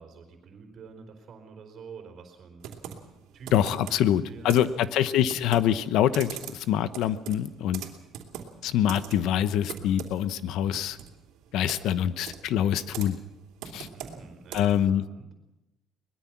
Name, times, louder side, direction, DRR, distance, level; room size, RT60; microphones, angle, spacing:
voice 1, 0.0-2.6 3.3-3.5 4.0-5.3 13.7-15.3, right 5 dB, 40° right, 3 dB, 4.0 m, -47 dB
Computer keyboard, 2.6-14.9, right 9 dB, 90° right, 3.0 m, -43 dB
voice 2, 3.5-7.8 8.6-11.0 11.5-13.2 13.7-13.9 14.5-15.0, left 10 dB, 70° left, 14 dB, 1.0 m, -25 dB
23.0 x 20.5 x 6.0 m, 0.93 s
cardioid pair, 165°, 0 cm